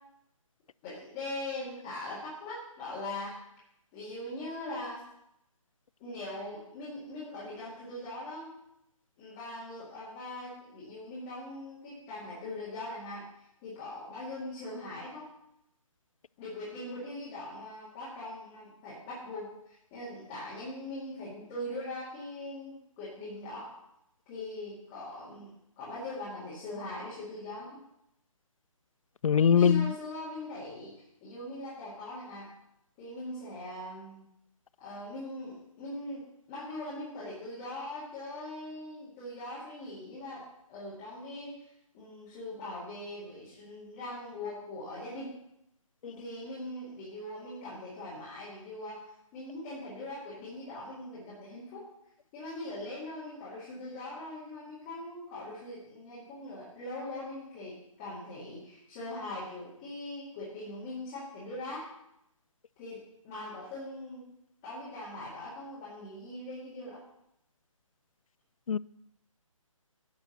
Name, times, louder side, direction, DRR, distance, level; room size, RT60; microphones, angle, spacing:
voice 1, 0.8-3.4 3.9-5.0 6.0-8.5 9.2-13.3 13.6-15.3 16.4-19.5 19.9-23.7 24.3-25.5 25.8-27.8 29.5-32.5 33.0-34.2 34.8-41.5 41.9-45.3 46.0-51.8 52.3-61.9 62.8-64.2 64.6-67.0, left 1 dB, 10° left, 2.0 m, -41 dB
voice 2, 29.2-29.9 68.7-68.8, left 7 dB, 75° left, 0.4 m, -22 dB
10.5 x 5.2 x 6.5 m
hypercardioid pair, 175°, 17 cm